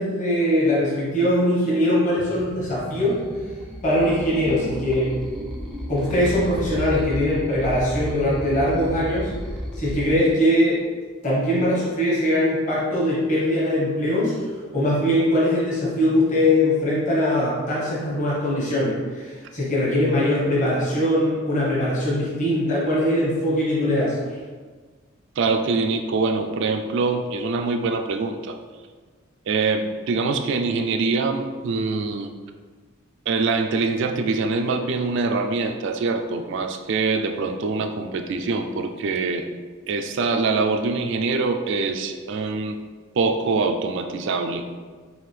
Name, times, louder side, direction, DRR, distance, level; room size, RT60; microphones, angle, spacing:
voice 1, 0.0-3.2 3.8-5.1 5.9-9.3 9.8-10.8 11.2-14.3 14.7-24.2, left 1 dB, 35° left, -7 dB, 1.0 m, -21 dB
sound 1, 2.2-10.1, equal, ahead, 0.5 m, -33 dB
voice 2, 25.4-28.6 29.5-32.3 33.3-39.5 39.9-42.8 43.1-44.6, right 4 dB, 60° right, 6 dB, 0.3 m, -24 dB
5.5 x 2.5 x 3.2 m, 1.5 s
head